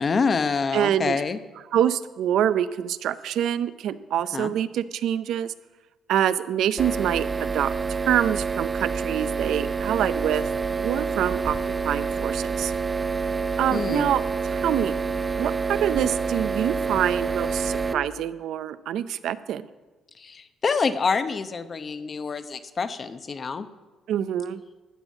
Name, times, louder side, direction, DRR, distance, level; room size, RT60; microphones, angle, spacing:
voice 1, 0.0-1.4 4.3-4.5 13.7-14.1 20.2-23.7, left 5 dB, 40° left, 11 dB, 0.8 m, -26 dB
voice 2, 0.7-1.2 1.7-5.5 6.1-10.4 10.8-11.6 11.8-12.7 13.6-14.2 14.5-14.9 15.4-19.7 24.1-24.6, right 10 dB, 75° right, 14 dB, 0.5 m, -25 dB
sound 1, 6.8-17.9, right 5 dB, 25° right, 0.6 m, -27 dB
13.5 x 6.3 x 7.3 m, 1.2 s
cardioid pair, 85°, 0 cm